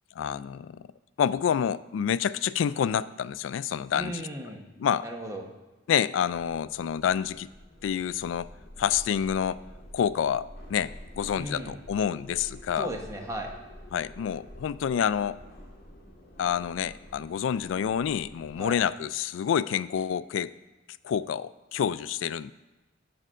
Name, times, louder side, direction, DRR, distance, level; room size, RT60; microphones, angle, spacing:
voice 1, 0.2-0.9 1.2-4.2 4.8-5.0 5.9-7.5 7.8-8.5 8.8-9.6 9.9-12.9 13.9-15.4 16.4-20.6 21.0-22.5, left 8 dB, 75° left, 17 dB, 0.3 m, -28 dB
voice 2, 3.9-4.6 5.0-5.4 11.3-11.8 12.8-13.5 18.6-18.8, right 1 dB, 15° right, 1 dB, 1.1 m, -36 dB
sound 1, 6.2-18.8, equal, 55° left, 2.1 m, -48 dB
7.7 x 5.3 x 6.2 m, 1.1 s
head